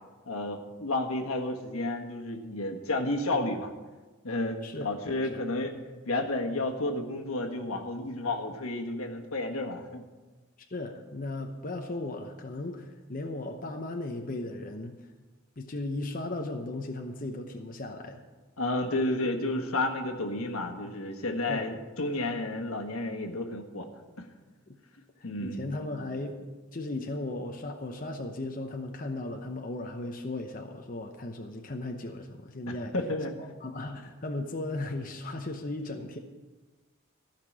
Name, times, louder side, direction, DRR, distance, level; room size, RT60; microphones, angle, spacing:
voice 1, 0.3-3.7 4.2-5.8 6.1-10.0 18.6-23.9 24.2-24.3 25.2-25.7 32.7-33.4, left 2 dB, 90° left, 3 dB, 1.6 m, -31 dB
voice 2, 4.6-4.9 5.3-5.4 10.7-15.1 15.6-18.2 21.5-21.8 24.7-24.8 25.2-32.9 33.4-36.2, left 2 dB, 40° left, 3 dB, 0.9 m, -36 dB
15.0 x 5.9 x 8.7 m, 1.3 s
head